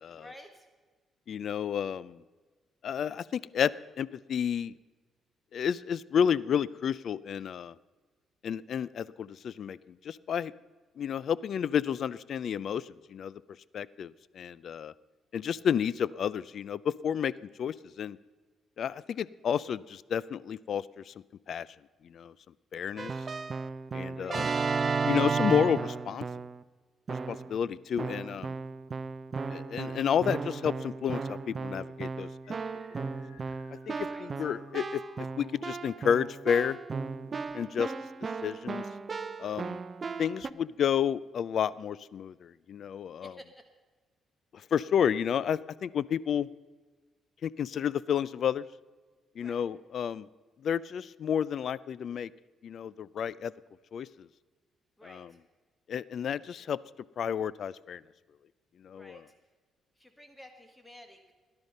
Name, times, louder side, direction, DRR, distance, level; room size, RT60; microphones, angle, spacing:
voice 1, 0.1-0.7 24.1-24.4 34.1-34.4 43.2-43.5 49.4-49.6 55.0-55.2 58.9-59.2 60.0-61.3, equal, 10° left, 6 dB, 1.5 m, -51 dB
voice 2, 1.3-2.2 2.8-4.7 5.5-7.7 8.4-9.8 10.0-10.5 11.0-13.3 13.7-14.9 15.3-17.3 17.6-18.2 18.8-21.1 21.5-21.7 22.1-22.3 22.7-23.1 23.9-24.5 25.0-26.3 27.3-28.5 29.5-32.6 33.0-33.1 33.9-36.8 37.5-37.9 38.4-38.8 39.4-39.8 40.2-43.3 44.7-46.5 47.4-48.6 49.4-50.3 50.6-52.3 52.6-53.5 53.9-54.1 55.0-55.3 55.9-56.8 57.2-58.0 58.8-59.2, left 8 dB, 60° left, 20 dB, 0.4 m, -31 dB
Keyboard (musical), 23.0-26.6 27.1-27.6 28.0-40.5, right 4 dB, 35° right, 0.6 m, -34 dB
sound 1, 32.4-37.4, left 2 dB, 90° left, 4.0 m, -59 dB
17.0 x 11.0 x 5.4 m, 1.3 s
cardioid pair, 90°, 0 cm